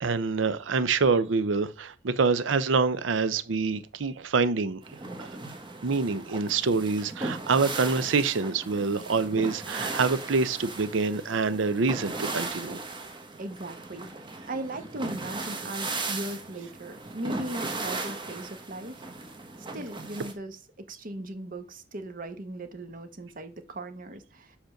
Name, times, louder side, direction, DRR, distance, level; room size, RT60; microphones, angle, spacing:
voice 1, 0.0-4.8 5.2-5.3 5.8-12.8, right 4 dB, 85° right, 0.6 m, -26 dB
sound 1, 4.8-20.3, right 3 dB, 25° right, 1.2 m, -37 dB
voice 2, 13.4-19.1 19.7-24.6, right 1 dB, 50° right, 1.0 m, -38 dB
5.2 x 5.1 x 6.4 m
head